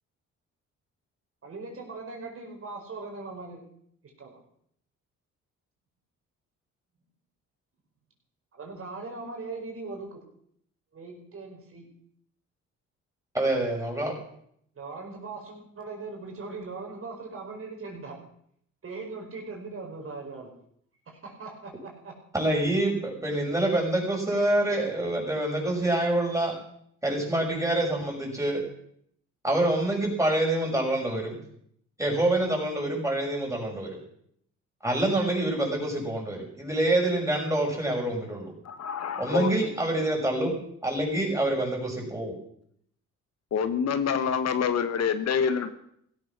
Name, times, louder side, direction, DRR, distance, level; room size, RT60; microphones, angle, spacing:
voice 1, 1.4-3.6 4.2-4.4 8.5-10.2 10.9-11.9 14.8-18.2 18.8-20.5 21.1-22.2, right 3 dB, 45° right, 1 dB, 5.2 m, -40 dB
voice 2, 13.3-14.1 22.3-26.6 27.0-28.6 29.4-31.4 32.0-34.0 34.8-38.5 39.2-40.5 40.8-42.4, right 1 dB, 10° right, 0 dB, 6.4 m, -26 dB
voice 3, 38.6-39.5 43.5-45.7, left 7 dB, 60° left, 11 dB, 1.3 m, -26 dB
16.5 x 13.0 x 6.0 m, 0.68 s
cardioid pair, 90°, 30 cm